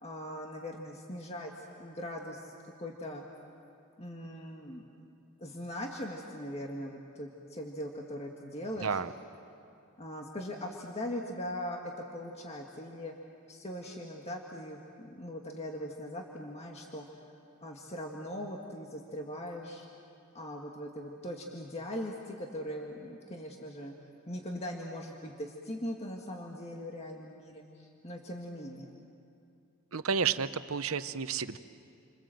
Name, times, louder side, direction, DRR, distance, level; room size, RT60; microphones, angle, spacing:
voice 1, 0.0-2.5 2.8-3.2 4.0-4.9 5.4-9.0 10.0-13.1 13.5-17.1 17.6-19.9 20.3-23.9 24.3-28.9, equal, 30° left, 0 dB, 1.9 m, -40 dB
voice 2, 8.8-9.1 29.9-31.6, right 6 dB, 85° right, 12 dB, 0.9 m, -31 dB
29.5 x 26.0 x 7.8 m, 2.6 s
head